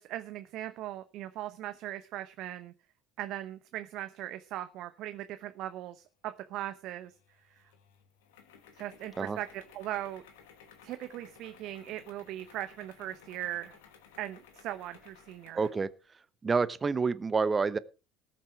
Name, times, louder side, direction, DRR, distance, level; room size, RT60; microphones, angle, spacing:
voice 1, 0.0-2.7 3.2-7.1 7.5-7.7 8.7-10.2 10.8-13.8 14.2-15.7, right 13 dB, 60° right, 10 dB, 0.9 m, -39 dB
sound 1, 7.1-15.9, left 7 dB, 70° left, 2.4 m, -57 dB
voice 2, 15.5-15.9 16.4-17.8, right 4 dB, 25° right, 16 dB, 1.0 m, -28 dB
19.0 x 7.4 x 4.6 m, 0.32 s
hypercardioid pair, 65°, 0 cm